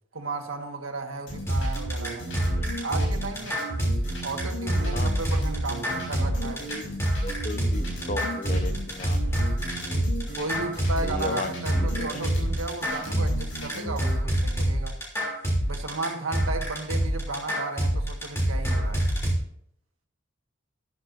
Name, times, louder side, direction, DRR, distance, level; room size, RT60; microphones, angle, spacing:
voice 1, 0.1-2.4 2.8-3.6 4.2-6.6 10.4-15.0 15.7-19.1, right 3 dB, 80° right, 4 dB, 1.7 m, -34 dB
sound 1, 1.3-14.2, right 1 dB, 70° left, 5.5 m, -35 dB
sound 2, 1.5-19.3, equal, 15° left, 3.2 m, -26 dB
voice 2, 7.2-9.5 11.0-11.5 11.8-12.5, left 2 dB, 40° left, 8 dB, 1.0 m, -35 dB
13.5 x 12.5 x 2.7 m, 0.68 s
head